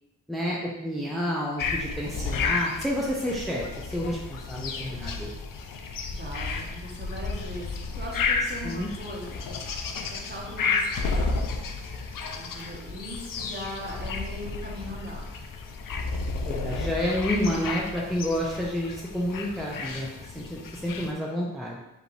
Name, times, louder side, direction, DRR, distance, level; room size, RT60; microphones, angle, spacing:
voice 1, 0.3-5.3 8.6-8.9 16.3-21.8, equal, ahead, -4 dB, 0.8 m, -30 dB
sound 1, 1.6-21.1, left 4 dB, 75° left, 0.6 m, -32 dB
voice 2, 6.1-9.5 10.1-11.4 12.4-15.4, equal, 30° right, -3 dB, 1.4 m, -39 dB
4.9 x 3.1 x 3.2 m, 0.96 s
cardioid pair, 45°, 33 cm